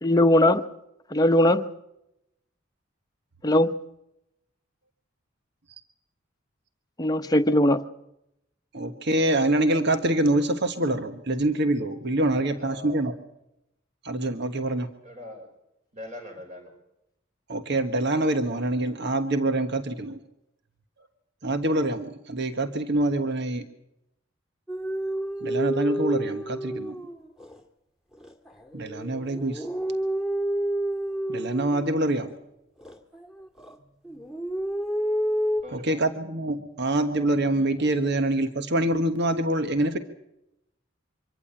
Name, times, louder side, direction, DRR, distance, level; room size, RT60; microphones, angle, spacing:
voice 1, 0.0-0.6 1.1-1.7 3.4-3.7 7.0-7.8, left 1 dB, 20° left, 6 dB, 0.9 m, -19 dB
voice 2, 8.7-13.1 14.0-14.9 17.5-20.2 21.4-23.6 25.4-26.9 28.7-29.6 31.3-32.3 35.7-40.0, right 1 dB, 60° right, 8 dB, 1.4 m, -25 dB
voice 3, 12.6-13.1 15.0-15.5 15.9-16.7 35.6-36.0, left 1 dB, 40° right, 3 dB, 6.0 m, -41 dB
sound 1, 24.7-27.6 28.1-32.3 32.8-33.7 34.0-35.6, right 1 dB, ahead, 2.0 m, -30 dB
25.0 x 14.5 x 8.8 m, 0.85 s
head